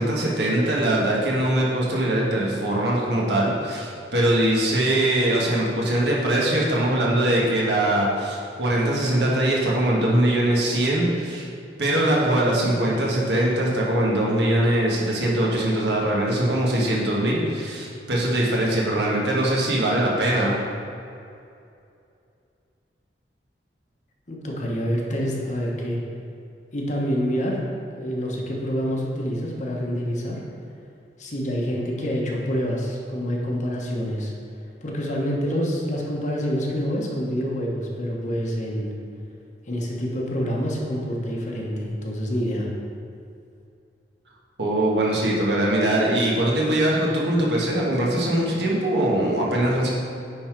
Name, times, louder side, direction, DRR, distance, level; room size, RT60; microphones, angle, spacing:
voice 1, 0.0-11.5 11.8-20.6 44.6-49.9, right 1 dB, 70° right, -4 dB, 1.5 m, -22 dB
voice 2, 24.3-26.0 26.7-27.6 27.9-30.4 31.2-34.3 34.8-38.9 39.7-42.7, equal, 45° left, -2 dB, 1.1 m, -27 dB
9.6 x 4.0 x 4.5 m, 2.5 s
head